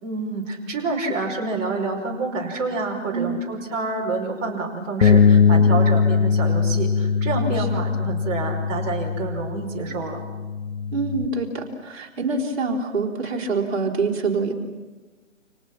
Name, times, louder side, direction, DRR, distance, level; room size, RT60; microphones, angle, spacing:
voice 1, 0.0-10.2, right 3 dB, 25° right, -2 dB, 5.3 m, -28 dB
Bass guitar, 5.0-11.3, left 5 dB, 55° left, 1.3 m, -20 dB
voice 2, 10.9-14.5, right 4 dB, 55° right, 1 dB, 4.3 m, -25 dB
29.5 x 26.0 x 6.0 m, 1.3 s
figure-of-eight pair, 140°, 38 cm